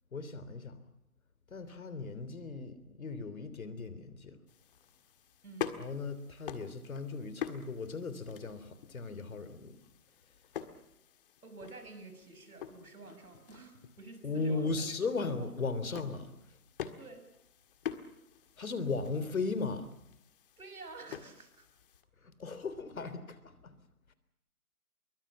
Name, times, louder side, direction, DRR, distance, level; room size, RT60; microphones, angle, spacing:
voice 1, 0.1-0.8 1.5-4.4 5.8-9.8 14.2-16.3 18.6-19.9 22.2-23.4 23.6-23.7, left 4 dB, 65° left, 13 dB, 3.5 m, -37 dB
sound 1, 4.5-22.0, left 9 dB, 35° left, 1.8 m, -46 dB
voice 2, 11.4-15.0 15.3-15.5 17.0-17.3 20.6-21.7, right 3 dB, 75° right, 8 dB, 6.1 m, -50 dB
23.5 x 23.5 x 7.3 m, 0.82 s
figure-of-eight pair, 140°, 45 cm